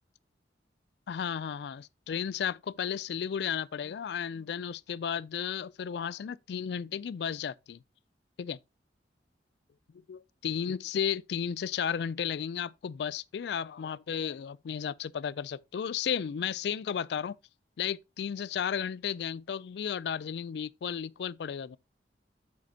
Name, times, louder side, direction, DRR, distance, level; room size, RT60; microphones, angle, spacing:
voice 1, 1.1-7.8 8.4-8.6 10.1-17.4 17.8-21.8, left 8 dB, 65° left, 0.3 m, -34 dB
7.6 x 7.6 x 2.8 m
head